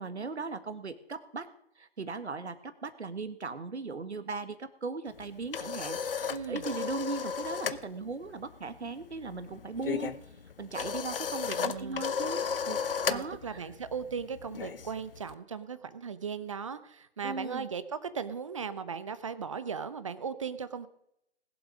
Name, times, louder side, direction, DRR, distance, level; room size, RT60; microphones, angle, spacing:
voice 1, 0.0-1.5 1.8-6.0 6.5-10.1 10.6-13.6 17.2-17.7, right 4 dB, 70° right, 11 dB, 1.7 m, -38 dB
sound 1, 5.1-7.8 8.1-8.4 8.7-15.3, left 6 dB, 55° left, 0.8 m, -35 dB
voice 2, 6.3-6.6 11.6-12.0 13.1-20.9, right 6 dB, 30° right, 14 dB, 0.7 m, -37 dB
20.0 x 7.6 x 5.1 m, 0.77 s
figure-of-eight pair, 150°, 34 cm